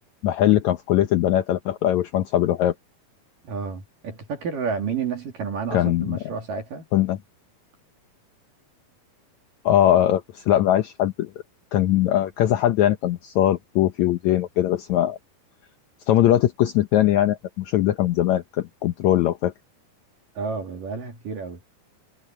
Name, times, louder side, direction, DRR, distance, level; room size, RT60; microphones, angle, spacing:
voice 1, 0.2-2.7 5.7-6.2 6.9-7.2 9.7-11.3 11.7-15.2 16.1-19.5, left 12 dB, 75° left, 1.7 m, -21 dB
voice 2, 3.4-6.9 20.4-21.6, right 5 dB, 60° right, 4.3 m, -30 dB
omnidirectional pair, 4.5 m